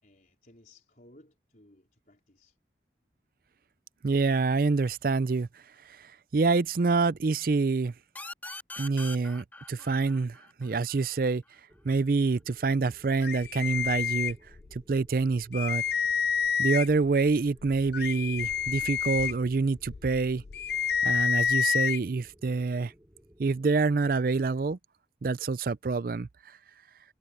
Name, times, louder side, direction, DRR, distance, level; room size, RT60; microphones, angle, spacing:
voice 1, 0.0-2.6, left 1 dB, 50° left, 4.1 m, -58 dB
voice 2, 4.0-5.5 6.3-7.9 8.8-11.4 11.8-14.4 14.7-15.8 16.6-20.4 21.0-22.9 23.4-24.8 25.2-26.3, right 4 dB, 55° right, 0.4 m, -26 dB
sound 1, 8.2-11.6, left 2 dB, 10° left, 2.2 m, -43 dB
sound 2, 11.7-24.8, equal, 15° right, 2.7 m, -59 dB
sound 3, 13.2-14.8 15.2-15.3 15.5-17.1 17.6-22.0, left 7 dB, 65° left, 0.5 m, -29 dB
head